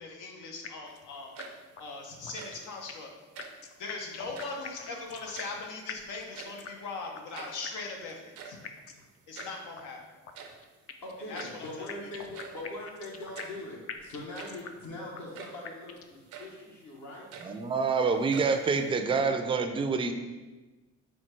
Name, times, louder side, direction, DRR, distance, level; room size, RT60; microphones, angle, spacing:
voice 1, 0.0-1.4 1.8-3.1 3.8-8.6 9.3-10.0 11.3-12.1, left 3 dB, 85° left, 1 dB, 0.8 m, -40 dB
sound 1, 0.6-1.1 1.4-1.5 1.8-1.9 2.3-3.1 3.4-5.6 5.9-6.9 7.1-7.2 7.6-8.2 8.6-9.1 9.4-9.5 9.8-9.9 10.2-11.1 11.4-13.6 13.9-14.9 15.1-15.2 15.6-16.2, left 7 dB, 50° left, 0.4 m, -43 dB
sound 2, 1.2-1.8 2.2-2.7 3.3-3.7 4.2-4.7 5.1-5.9 6.2-6.8 7.1-7.2 7.3-7.7 8.2-9.7 10.3-10.7 11.3-11.7 12.3-12.7 13.3-13.7 14.2-14.7 15.3-15.7 16.3-16.6 17.1-17.9 18.3-18.9, right 5 dB, 85° right, 0.6 m, -47 dB
voice 2, 11.0-17.3, left 1 dB, 70° left, -4 dB, 1.3 m, -42 dB
voice 3, 17.4-20.1, right 4 dB, 20° right, 7 dB, 0.3 m, -27 dB
4.3 x 2.3 x 4.4 m, 1.2 s
cardioid pair, 90°, 30 cm